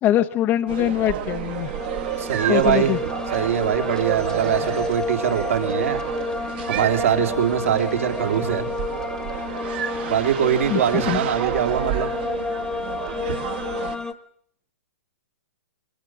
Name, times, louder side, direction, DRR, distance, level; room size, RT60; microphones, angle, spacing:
voice 1, 0.0-1.7 2.5-3.0 10.7-11.2, left 12 dB, 25° left, 6 dB, 0.8 m, -22 dB
sound 1, 0.7-14.0, right 12 dB, 45° right, 1.5 m, -31 dB
sound 2, 1.3-14.1, left 4 dB, 5° left, 1.3 m, -31 dB
voice 2, 2.2-3.0 3.3-6.0 6.7-8.7 10.1-12.1, right 9 dB, 65° right, 3 dB, 2.9 m, -22 dB
22.0 x 20.5 x 6.2 m, 0.64 s
figure-of-eight pair, 115°, 8 cm